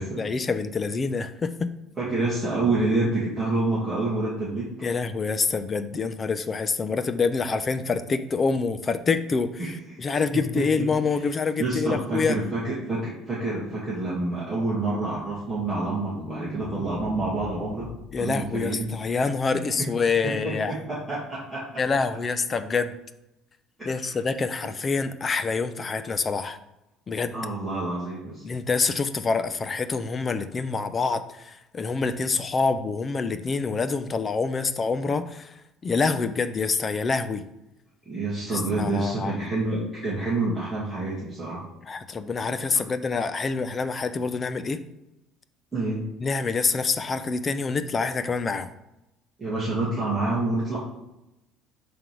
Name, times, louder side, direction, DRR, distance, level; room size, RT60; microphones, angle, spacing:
voice 1, 0.2-1.7 4.8-9.7 10.0-12.4 18.1-20.7 21.8-23.0 23.9-26.6 27.1-27.3 28.4-35.5 35.8-37.4 38.5-39.4 41.8-44.8 46.2-48.7, left 4 dB, 20° left, 11 dB, 0.5 m, -26 dB
voice 2, 2.0-4.7 9.6-9.7 11.6-17.9 18.2-18.9 20.4-21.8 23.8-24.2 27.3-28.4 38.1-41.6 45.7-46.0 49.4-50.8, right 2 dB, 10° right, -9 dB, 2.1 m, -28 dB
sound 1, 15.2-19.6, left 2 dB, 60° left, 1.8 m, -41 dB
7.6 x 3.5 x 6.0 m, 0.91 s
cardioid pair, 160°, 0 cm